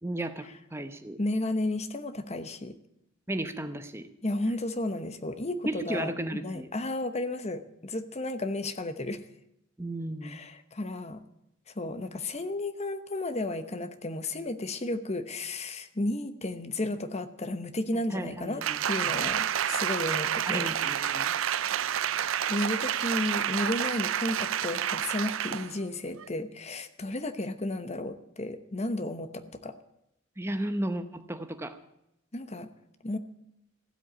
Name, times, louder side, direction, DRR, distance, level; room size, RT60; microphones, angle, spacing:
voice 1, 0.0-1.2 3.3-4.1 5.6-6.7 9.8-10.4 18.1-18.8 19.1-19.3 20.5-21.3 30.4-31.8, right 1 dB, 15° right, 8 dB, 0.8 m, -34 dB
voice 2, 1.2-2.8 4.2-9.2 10.2-11.2 11.8-20.8 22.2-29.7 32.3-32.7 33.0-33.2, left 1 dB, 35° left, 10 dB, 0.9 m, -33 dB
Applause, 18.6-25.7 26.2-26.3, right 9 dB, 85° right, 0.5 m, -29 dB
15.5 x 7.9 x 8.6 m, 0.82 s
head